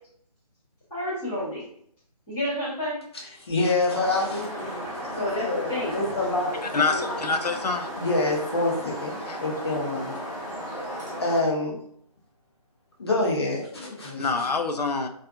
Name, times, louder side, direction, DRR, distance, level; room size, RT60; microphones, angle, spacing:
voice 1, 0.9-1.7 2.3-3.0 5.2-6.0, left 1 dB, 5° left, -15 dB, 0.5 m, -30 dB
voice 2, 3.4-7.0 8.0-10.1 11.2-11.7 13.0-14.3, left 2 dB, 40° left, -2 dB, 0.7 m, -27 dB
sound 1, 3.9-11.4, equal, 25° right, 0.9 m, -35 dB
voice 3, 6.7-7.9 9.3-9.4 14.2-15.1, left 4 dB, 80° left, 7 dB, 0.4 m, -26 dB
2.5 x 2.4 x 2.4 m, 0.67 s
figure-of-eight pair, 150°, 20 cm